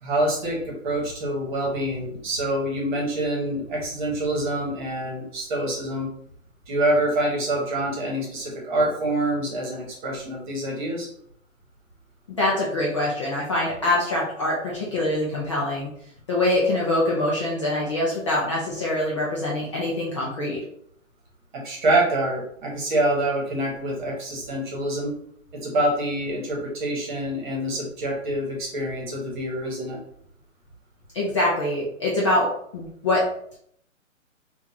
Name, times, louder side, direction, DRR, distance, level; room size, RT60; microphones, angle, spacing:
voice 1, 0.0-6.1 6.7-11.1 21.5-25.1 25.5-30.0, right 1 dB, 35° right, -2 dB, 1.3 m, -26 dB
voice 2, 12.4-15.9 16.3-20.6 31.1-33.3, left 1 dB, 25° left, -6 dB, 0.4 m, -24 dB
3.6 x 2.5 x 2.7 m, 0.68 s
hypercardioid pair, 135°, 40 cm